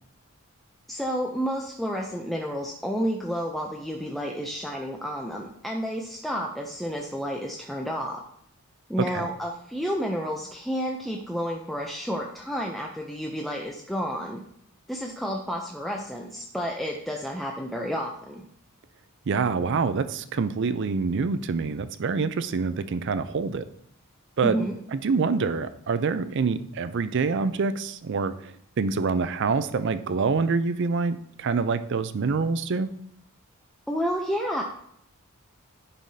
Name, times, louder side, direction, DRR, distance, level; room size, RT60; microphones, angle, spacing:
voice 1, 0.9-8.2 8.9-14.4 14.9-18.4 24.4-24.7 33.9-34.6, equal, ahead, -1 dB, 0.5 m, -30 dB
voice 2, 19.3-23.6 24.4-24.6 25.0-32.9, right 4 dB, 55° right, 12 dB, 0.4 m, -26 dB
10.5 x 5.5 x 2.7 m, 0.70 s
head